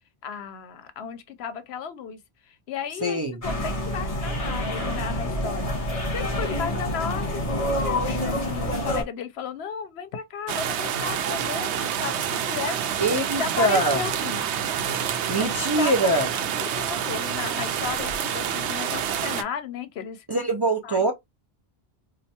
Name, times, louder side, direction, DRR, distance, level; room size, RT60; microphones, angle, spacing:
voice 1, 0.2-14.5 15.4-20.3 20.8-21.1, left 7 dB, 75° left, 0.8 m, -35 dB
voice 2, 3.0-3.4 13.0-14.0 15.3-16.3 20.3-21.1, right 2 dB, 30° right, 0.4 m, -23 dB
sound 1, 3.4-9.0, left 1 dB, 35° left, 1.3 m, -27 dB
sound 2, 10.5-19.4, right 8 dB, 90° right, 0.9 m, -28 dB
4.3 x 2.5 x 2.7 m
omnidirectional pair, 1.1 m